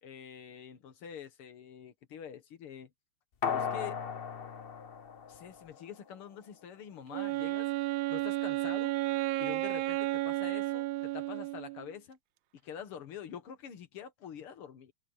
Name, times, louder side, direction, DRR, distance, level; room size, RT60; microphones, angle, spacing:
voice 1, 0.0-2.9 3.5-4.0 5.3-7.7 8.1-8.9 9.4-12.2 12.6-14.9, left 8 dB, 75° left, 2.4 m, -46 dB
sound 1, 3.4-6.0 6.3-6.4, left 6 dB, 40° left, 0.8 m, -36 dB
Wind instrument woodwind instrument, 7.1-11.9, right 17 dB, 75° right, 1.3 m, -32 dB
open air
omnidirectional pair, 2.4 m